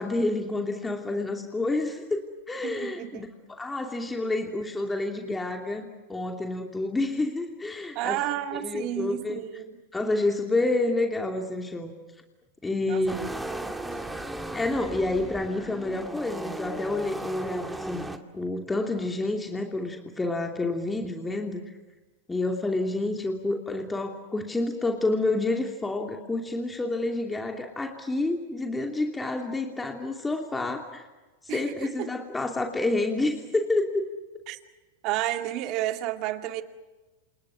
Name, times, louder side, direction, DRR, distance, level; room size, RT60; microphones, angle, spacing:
voice 1, 0.0-8.2 8.5-9.4 9.9-11.9 12.6-13.2 14.5-18.1 18.3-21.7 22.3-31.1 31.4-34.1, left 2 dB, 10° left, 3 dB, 2.8 m, -29 dB
voice 2, 2.6-3.3 7.9-9.8 12.8-13.4 13.6-13.8 31.5-32.1 34.5-34.6 35.0-36.6, right 14 dB, 45° right, 7 dB, 2.3 m, -32 dB
sound 1, 13.1-18.2, right 1 dB, 5° right, 2.3 m, -36 dB
29.0 x 27.5 x 6.3 m, 1.2 s
hypercardioid pair, 110°, 0 cm